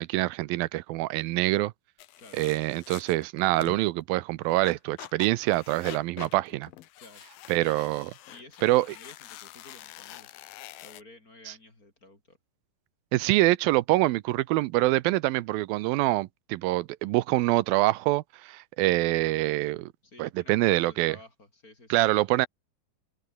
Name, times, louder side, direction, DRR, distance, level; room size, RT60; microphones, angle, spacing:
voice 1, 0.0-1.7 2.3-6.7 7.5-8.1 8.6-8.9 13.1-19.9 20.2-21.2 21.9-22.5, right 18 dB, 85° right, 2.5 m, -25 dB
sound 1, 2.0-3.9 4.5-11.0, left 14 dB, 80° left, 2.9 m, -46 dB
voice 2, 8.2-10.3 10.8-12.4 20.0-22.1, left 2 dB, 25° left, 4.6 m, -52 dB
omnidirectional pair, 4.1 m